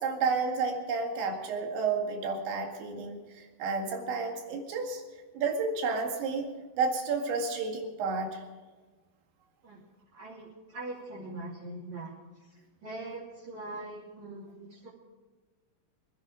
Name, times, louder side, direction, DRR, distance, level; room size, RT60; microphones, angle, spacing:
voice 1, 0.0-5.0 5.3-6.5 6.8-8.4, right 4 dB, 80° right, 2 dB, 4.3 m, -31 dB
voice 2, 10.1-12.1 12.8-14.9, right 2 dB, 40° right, -5 dB, 4.0 m, -42 dB
24.5 x 10.5 x 5.0 m, 1.3 s
omnidirectional pair, 5.1 m